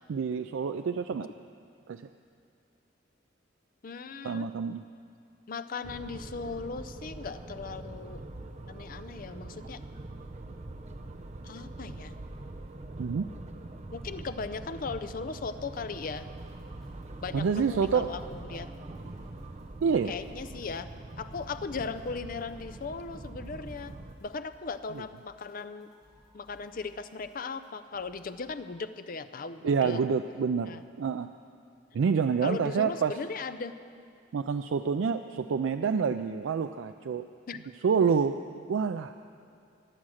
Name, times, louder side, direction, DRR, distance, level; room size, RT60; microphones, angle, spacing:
voice 1, 0.1-1.3 1.9-2.0 4.2-4.8 13.0-13.3 17.3-18.1 19.8-20.2 24.9-25.0 29.6-31.3 31.9-33.2 34.3-37.2 37.8-38.4 38.7-39.1, right 6 dB, 90° right, 8 dB, 0.4 m, -27 dB
voice 2, 3.8-4.5 5.5-8.2 8.7-9.8 11.4-12.2 13.9-16.3 17.2-18.7 20.1-20.9 21.2-25.9 26.3-30.0 30.7-30.8 32.4-33.7 37.5-37.6, left 4 dB, 50° left, 11 dB, 0.5 m, -38 dB
sound 1, 5.8-24.1, right 2 dB, 35° right, 0.7 m, -43 dB
sound 2, 15.6-28.4, equal, ahead, 4.1 m, -63 dB
20.0 x 7.5 x 6.4 m, 2.4 s
head